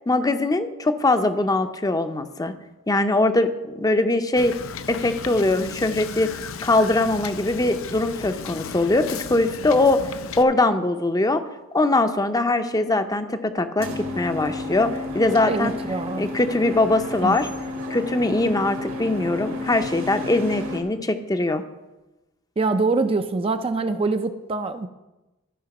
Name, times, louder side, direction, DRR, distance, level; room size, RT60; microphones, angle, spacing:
voice 1, 0.1-2.5 2.9-4.5 4.9-6.3 6.6-10.0 10.4-11.4 11.7-15.7 16.2-17.5 17.9-21.6, left 2 dB, 20° left, 9 dB, 0.6 m, -21 dB
Wind / Boat Water vehicle, 4.4-10.4, left 5 dB, 75° left, 0.5 m, -35 dB
sound 1, 13.8-20.8, left 2 dB, 75° right, 1.7 m, -32 dB
voice 2, 15.5-16.2 17.2-17.4 22.6-24.9, right 3 dB, 25° right, 9 dB, 0.4 m, -24 dB
13.5 x 5.0 x 5.9 m, 1.0 s
head